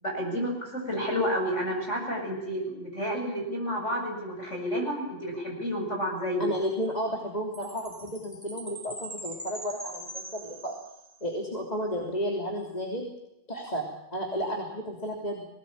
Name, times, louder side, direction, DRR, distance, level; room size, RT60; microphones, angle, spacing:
voice 1, 0.0-6.5, equal, 70° left, 0 dB, 7.9 m, -30 dB
voice 2, 6.4-10.7 11.2-13.1 13.5-15.5, equal, 30° left, 0 dB, 3.3 m, -32 dB
Chime, 7.5-11.3, right 1 dB, 15° right, 2.5 m, -42 dB
21.5 x 18.5 x 8.8 m, 0.90 s
omnidirectional pair, 1.3 m